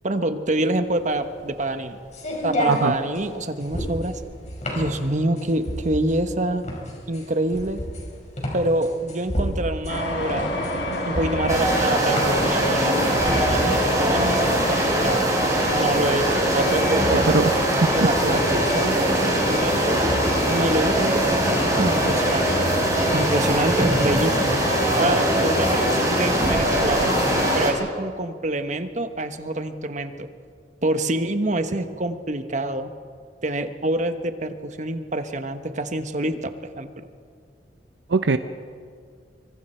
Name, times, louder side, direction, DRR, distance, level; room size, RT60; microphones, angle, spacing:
voice 1, 0.0-2.0 2.4-4.2 4.7-6.6 7.1-7.8 8.5-10.6 11.0-15.3 15.7-17.3 17.9-20.1 20.5-22.8 23.1-24.7 25.0-27.1 27.5-30.3 30.8-32.9 33.4-37.1, right 1 dB, 45° right, 8 dB, 1.2 m, -26 dB
sound 1, 0.8-14.6, equal, 40° left, 5.2 m, -31 dB
sound 2, 9.9-27.6, left 1 dB, 85° left, 4.4 m, -27 dB
sound 3, 11.5-27.7, right 1 dB, 20° right, 4.0 m, -22 dB
voice 2, 17.1-17.9 38.1-38.4, right 3 dB, 80° right, 10 dB, 0.7 m, -22 dB
25.0 x 24.0 x 4.5 m, 2.2 s
head